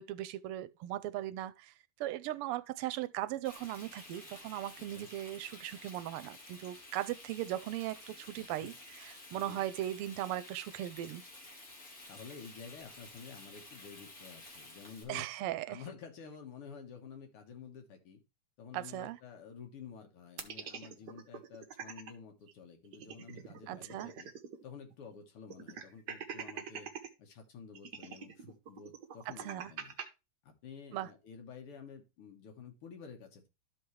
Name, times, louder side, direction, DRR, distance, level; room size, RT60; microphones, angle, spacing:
voice 1, 0.0-1.7 2.0-11.2 15.1-15.8 18.7-19.2 23.7-24.1 29.3-29.7 30.9-31.1, right 13 dB, 90° right, 1.5 m, -38 dB
Frying (food), 3.4-15.0, left 2 dB, 40° left, 2.4 m, -52 dB
voice 2, 8.4-8.7 9.4-9.6 12.1-15.3 15.7-18.2 18.6-24.3 24.6-26.9 27.2-30.0 30.4-33.5, left 6 dB, 85° left, 2.4 m, -50 dB
sound 1, 20.4-22.1 22.5-22.6 22.9-24.6 24.9-25.0 25.5-27.1 27.8-30.1, right 7 dB, 55° right, 1.5 m, -44 dB
12.5 x 4.7 x 3.2 m
omnidirectional pair, 2.4 m